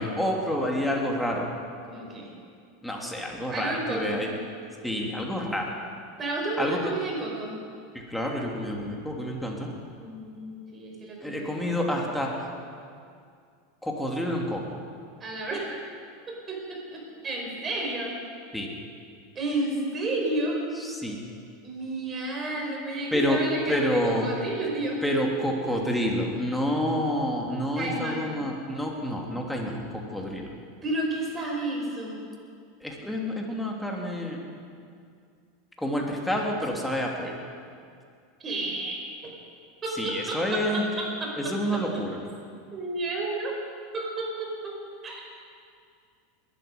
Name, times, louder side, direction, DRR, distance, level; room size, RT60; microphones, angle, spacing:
voice 1, 0.0-1.5 2.8-4.3 4.8-5.8 6.6-6.8 7.9-9.7 11.2-12.3 13.8-14.8 18.5-18.7 20.8-21.2 23.1-23.4 23.7-24.3 25.0-30.5 32.8-34.4 35.8-37.4 39.9-40.9 41.4-42.2, equal, 5° left, -1 dB, 3.1 m, -28 dB
voice 2, 1.9-2.3 3.5-4.3 6.2-7.5 10.0-11.9 15.2-15.8 16.3-16.6 16.9-18.1 19.4-20.6 21.6-25.0 27.8-28.3 30.8-32.2 38.4-39.0 39.8-40.6 41.2-41.3 42.7-43.5 43.9-44.7 45.0-45.4, right 2 dB, 25° right, -1 dB, 5.3 m, -31 dB
21.0 x 12.5 x 5.3 m, 2.3 s
hypercardioid pair, 90°, 0 cm